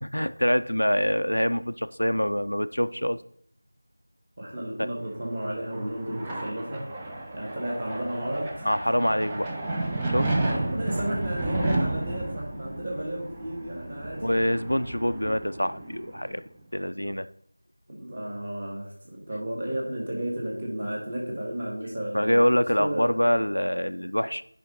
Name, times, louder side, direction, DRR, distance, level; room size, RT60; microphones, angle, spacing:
voice 1, 0.0-3.2 4.8-4.9 8.7-9.5 10.1-10.3 14.2-16.4 16.7-17.3 22.1-24.4, equal, 85° left, 12 dB, 0.4 m, -25 dB
voice 2, 4.4-6.9 7.3-8.6 10.4-14.3 17.9-22.5 22.8-23.1, right 1 dB, 25° right, -2 dB, 1.8 m, -33 dB
sound 1, 5.1-16.4, right 2 dB, 10° right, 0.5 m, -32 dB
9.2 x 5.1 x 4.0 m, 0.65 s
figure-of-eight pair, 175°, 0 cm